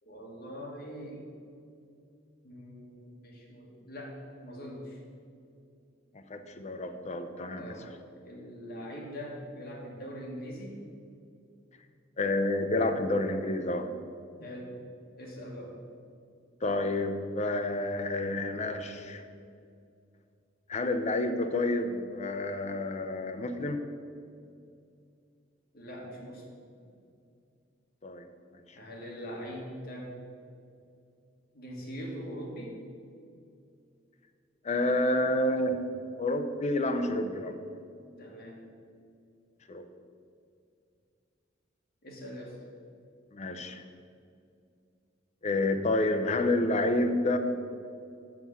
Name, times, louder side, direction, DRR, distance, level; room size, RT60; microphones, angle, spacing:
voice 1, 0.0-1.3 2.4-5.0 7.5-7.9 8.2-10.8 14.4-14.8 15.2-15.8 25.7-26.4 28.7-30.1 31.5-32.8 38.2-38.6 42.0-42.6, equal, 55° left, -2 dB, 1.7 m, -42 dB
voice 2, 6.1-7.7 12.2-13.9 16.6-19.2 20.7-23.8 28.0-28.3 34.6-35.8 36.2-37.6 39.7-39.8 43.3-43.8 45.4-47.4, left 2 dB, 35° left, 7 dB, 0.6 m, -29 dB
6.1 x 6.0 x 7.0 m, 2.5 s
head